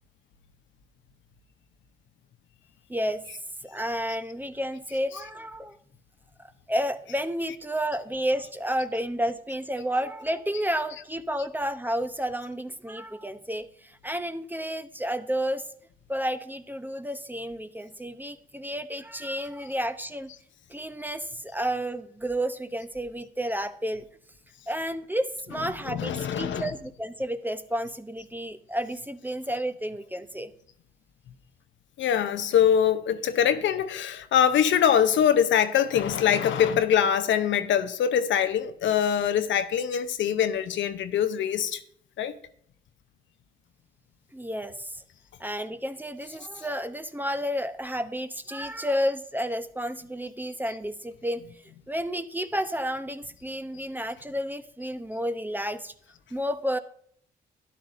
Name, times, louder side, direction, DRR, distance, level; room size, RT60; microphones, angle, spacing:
voice 1, 2.9-3.3 3.6-5.8 6.4-15.6 16.1-20.3 20.7-24.1 24.7-30.5 44.3-45.0 45.4-51.4 51.9-55.9 56.3-56.8, equal, 10° right, 0.7 m, -31 dB
voice 2, 25.9-26.7 32.0-41.8 42.2-42.3, left 9 dB, 65° left, 0.7 m, -23 dB
12.5 x 10.0 x 2.6 m
hypercardioid pair, 40°, 21 cm